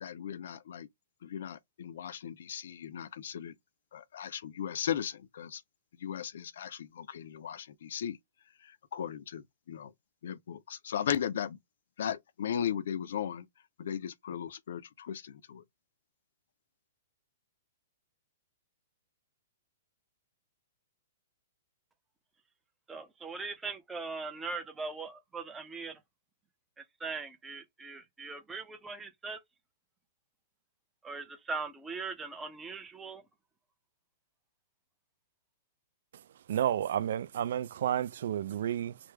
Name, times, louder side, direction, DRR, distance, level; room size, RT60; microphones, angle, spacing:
voice 1, 0.0-0.9 1.2-3.5 3.9-5.6 6.0-8.2 8.9-9.4 9.7-9.9 10.2-11.6 12.0-13.4 13.8-15.6, left 9 dB, 65° left, 0.5 m, -36 dB
voice 2, 22.9-26.0 26.8-29.4 31.0-33.2, right 4 dB, 10° right, 0.5 m, -40 dB
voice 3, 36.5-39.0, right 10 dB, 60° right, 0.3 m, -31 dB
3.3 x 2.0 x 3.3 m
hypercardioid pair, 160°, 0 cm